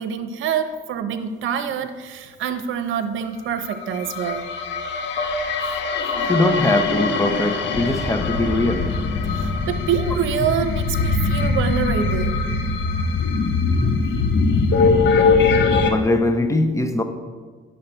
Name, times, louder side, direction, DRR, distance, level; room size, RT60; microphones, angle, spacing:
voice 1, 0.0-4.5 9.2-12.4, right 8 dB, 80° right, 9 dB, 0.8 m, -26 dB
sound 1, 3.6-15.9, left 4 dB, 65° left, 1.0 m, -21 dB
voice 2, 6.3-8.9 15.9-17.0, left 2 dB, 15° left, 7 dB, 0.9 m, -21 dB
9.5 x 6.6 x 4.4 m, 1.5 s
cardioid pair, 90°, 20 cm